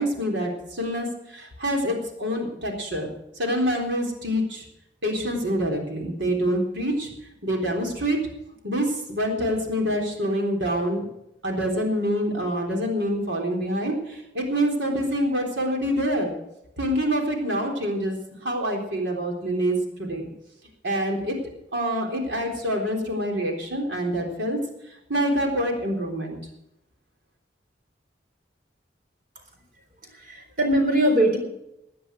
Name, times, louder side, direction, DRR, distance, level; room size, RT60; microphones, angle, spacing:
voice 1, 0.0-3.1 3.4-4.6 5.0-7.1 7.4-8.2 8.6-11.0 11.4-16.3 16.8-18.2 18.4-20.3 20.8-21.4 21.7-24.6 25.1-26.4, equal, 85° right, 1 dB, 3.8 m, -26 dB
voice 2, 30.1-31.4, right 1 dB, 50° right, 3 dB, 3.9 m, -21 dB
16.5 x 10.0 x 6.3 m, 0.83 s
head